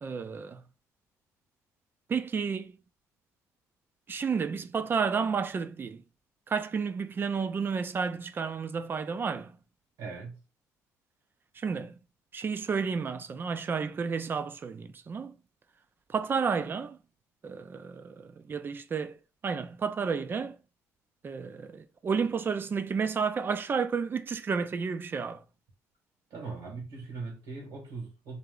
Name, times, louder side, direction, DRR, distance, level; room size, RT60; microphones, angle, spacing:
voice 1, 0.0-0.6 2.1-2.8 4.1-6.0 6.5-9.6 11.5-12.0 12.3-15.4 16.1-17.0 17.4-19.2 19.4-20.6 21.2-25.4, right 5 dB, 35° right, 0.5 m, -31 dB
voice 2, 10.0-10.4 26.3-28.4, right 4 dB, 80° right, 2.0 m, -40 dB
3.4 x 2.8 x 3.9 m
cardioid pair, 105°, 6 cm